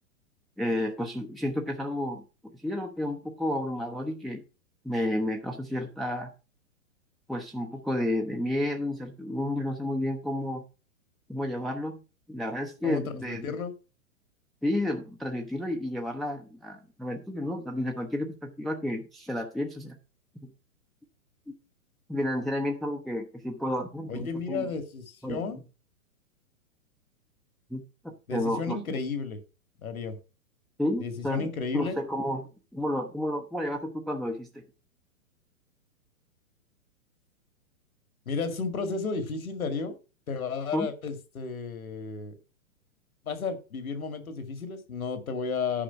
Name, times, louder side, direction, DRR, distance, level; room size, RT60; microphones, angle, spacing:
voice 1, 0.6-2.2 2.6-4.4 4.8-6.3 7.3-10.6 11.3-12.0 12.3-13.5 14.6-20.0 21.5-21.6 22.1-24.6 25.2-25.4 27.7-29.0 30.8-34.5 40.7-40.9, left 1 dB, ahead, 3 dB, 0.6 m, -31 dB
voice 2, 12.8-13.7 24.1-25.6 28.3-29.4 29.8-30.2 31.0-31.9 38.3-40.0 40.3-42.3 43.2-45.8, left 4 dB, 80° left, 9 dB, 2.2 m, -33 dB
10.0 x 5.2 x 5.8 m, 0.32 s
hypercardioid pair, 125°, 42 cm